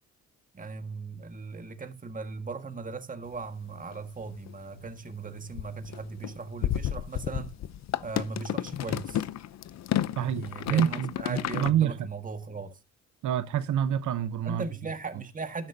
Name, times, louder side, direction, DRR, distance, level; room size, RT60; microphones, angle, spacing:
voice 1, 0.5-7.5 8.0-9.3 10.2-12.8 14.4-15.7, right 4 dB, 25° right, 1.7 m, -38 dB
sound 1, 3.3-3.4 3.9-4.5 4.8-4.9 5.3-11.7, left 11 dB, 60° left, 0.7 m, -32 dB
voice 2, 10.2-12.0 13.2-14.6, right 10 dB, 75° right, 0.9 m, -27 dB
12.5 x 10.5 x 2.7 m
cardioid pair, 90°, 30 cm